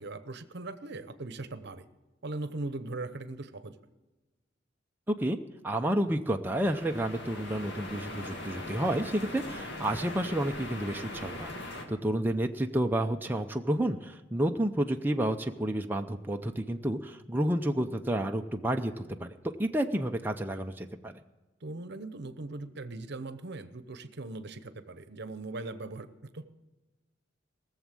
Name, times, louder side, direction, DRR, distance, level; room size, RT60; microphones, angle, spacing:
voice 1, 0.0-1.9 2.2-3.7 21.6-26.5, right 2 dB, 60° right, 12 dB, 0.9 m, -39 dB
voice 2, 5.1-5.4 5.6-11.5 11.9-19.3 19.6-21.1, right 1 dB, 10° right, 4 dB, 0.5 m, -30 dB
sound 1, 6.5-11.8, left 1 dB, 65° left, 2.0 m, -40 dB
19.0 x 7.2 x 7.5 m, 1.2 s
head